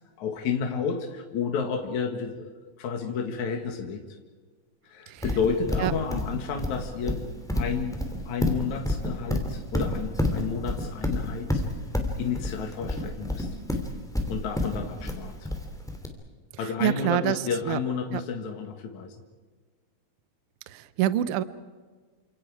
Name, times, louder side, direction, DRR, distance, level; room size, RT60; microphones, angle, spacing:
voice 1, 0.2-4.0 4.8-8.0 8.3-11.6 12.2-13.5 14.3-15.5 16.6-19.2, left 6 dB, 70° left, 4 dB, 3.1 m, -31 dB
Livestock farm animals working animals, 5.2-16.1, left 1 dB, ahead, 2.7 m, -28 dB
voice 2, 16.6-17.8 18.1-18.2 20.7-21.4, right 12 dB, 65° right, 14 dB, 1.5 m, -27 dB
29.5 x 26.5 x 4.9 m, 1.5 s
omnidirectional pair, 3.5 m